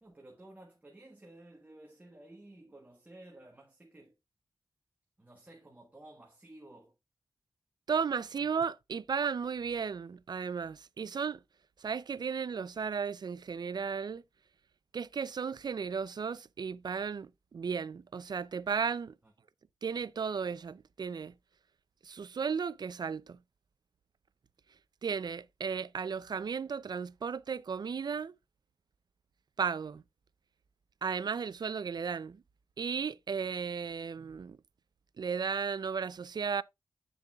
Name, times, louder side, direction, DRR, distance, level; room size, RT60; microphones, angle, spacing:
voice 1, 0.0-4.1 5.2-6.9 19.2-19.3, right 1 dB, 20° right, 1.3 m, -54 dB
voice 2, 7.9-11.4 11.8-14.2 14.9-19.1 19.8-21.3 22.0-23.4 25.0-28.3 29.6-30.0 31.0-32.4 32.8-34.6 35.2-36.6, right 6 dB, 60° right, 0.4 m, -35 dB
8.3 x 6.8 x 2.3 m
wide cardioid pair, 105°, 8 cm